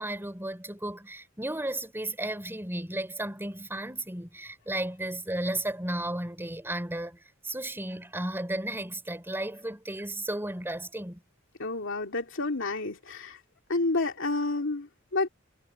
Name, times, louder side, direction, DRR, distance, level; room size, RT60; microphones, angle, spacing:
voice 1, 0.0-7.2 7.4-11.2, right 1 dB, 10° right, 4.7 m, -34 dB
voice 2, 11.6-13.4 13.7-15.3, left 3 dB, 65° left, 2.8 m, -29 dB
head